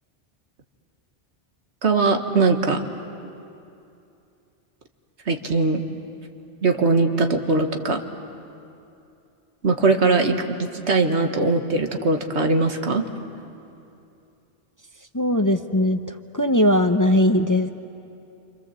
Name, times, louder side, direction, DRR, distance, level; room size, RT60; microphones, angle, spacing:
voice 1, 1.8-2.8 5.3-5.8 6.6-8.0 9.6-10.3 10.7-13.0, right 3 dB, 85° right, 5 dB, 1.8 m, -20 dB
voice 2, 15.1-16.0 16.3-17.7, left 1 dB, 20° left, 7 dB, 0.6 m, -19 dB
28.0 x 26.0 x 7.5 m, 2.7 s
omnidirectional pair, 1.1 m